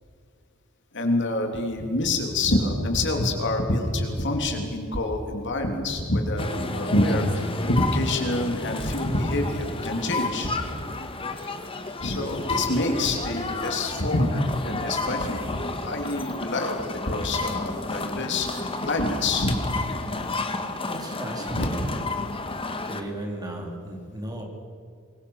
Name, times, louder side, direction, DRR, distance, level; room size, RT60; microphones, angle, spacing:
voice 1, 0.9-6.5 6.7-10.6 12.0-19.6 21.5-21.6, left 1 dB, 55° left, 3 dB, 3.2 m, -26 dB
sound 1, 6.4-23.0, left 3 dB, 25° left, 1.8 m, -31 dB
voice 2, 20.9-22.0 22.8-24.4, right 1 dB, 20° right, 1 dB, 4.2 m, -35 dB
24.5 x 22.0 x 6.5 m, 2.3 s
head